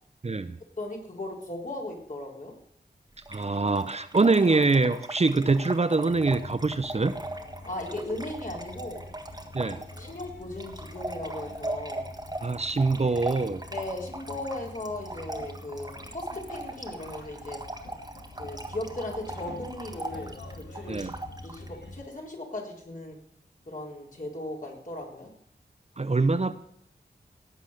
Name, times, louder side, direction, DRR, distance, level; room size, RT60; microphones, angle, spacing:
voice 1, 0.2-0.6 3.3-7.1 9.5-9.8 12.4-13.6 20.9-21.2 26.0-26.5, right 3 dB, 40° right, 12 dB, 0.7 m, -24 dB
voice 2, 0.8-2.5 7.6-9.1 10.0-12.0 13.7-17.6 18.4-21.1 21.4-23.2 23.7-25.3, left 2 dB, 50° left, -1 dB, 4.0 m, -37 dB
Trickle dribble / Fill (with liquid), 3.2-21.7, right 2 dB, 20° right, 1.6 m, -39 dB
sound 1, 6.1-22.1, left 2 dB, 85° left, 2.1 m, -46 dB
17.5 x 7.9 x 6.6 m, 0.72 s
wide cardioid pair, 75°, 18 cm